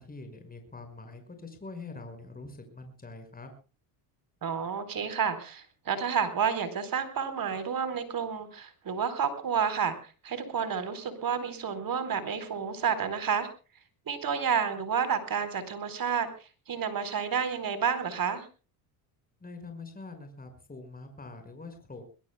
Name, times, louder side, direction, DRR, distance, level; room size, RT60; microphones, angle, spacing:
voice 1, 0.0-3.5 19.4-22.0, left 3 dB, 20° left, 6 dB, 5.8 m, -44 dB
voice 2, 4.4-13.5 14.1-16.3 16.7-18.5, right 7 dB, 45° right, 13 dB, 4.3 m, -30 dB
22.5 x 21.5 x 2.3 m, 0.35 s
supercardioid pair, 90°, 48 cm